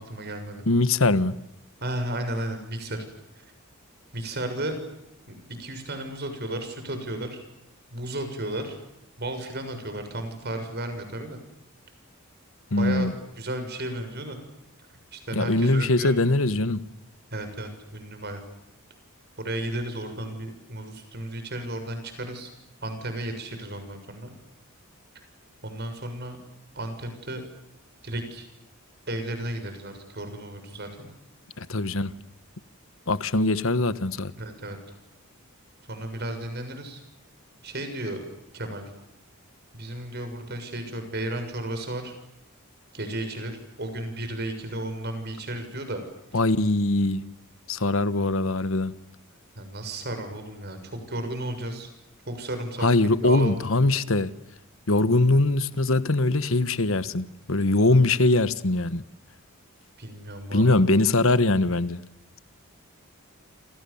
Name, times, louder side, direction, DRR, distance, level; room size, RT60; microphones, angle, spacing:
voice 1, 0.0-0.6 1.8-3.0 3.4-3.5 4.1-4.8 5.2-7.4 7.9-8.7 9.2-11.4 12.8-13.1 13.4-14.4 15.1-16.2 17.3-18.4 19.4-22.5 22.8-24.3 25.6-26.4 26.7-27.4 28.0-28.5 29.1-31.1 34.4-34.8 35.9-37.0 37.6-38.2 38.5-38.9 39.7-42.1 42.9-46.0 49.5-51.9 52.3-53.7 60.0-60.8, right 1 dB, 50° right, 6.9 m, -33 dB
voice 2, 0.7-1.3 12.7-13.1 15.3-16.8 31.6-32.1 33.1-34.3 46.3-47.3 47.7-48.9 52.8-54.3 54.9-59.0 60.5-62.0, left 2 dB, 65° left, 1.3 m, -22 dB
29.0 x 27.5 x 7.2 m
head